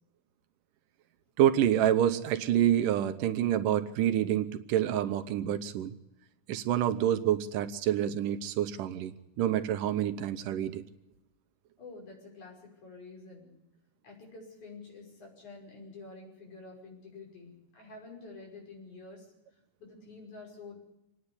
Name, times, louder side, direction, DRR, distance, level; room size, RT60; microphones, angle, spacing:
voice 1, 1.4-5.9 6.5-10.9, right 11 dB, 80° right, 8 dB, 2.5 m, -27 dB
voice 2, 11.8-13.6 14.0-19.3 19.8-20.8, left 3 dB, 65° left, 0 dB, 7.3 m, -48 dB
26.0 x 10.0 x 9.9 m, 0.91 s
omnidirectional pair, 3.8 m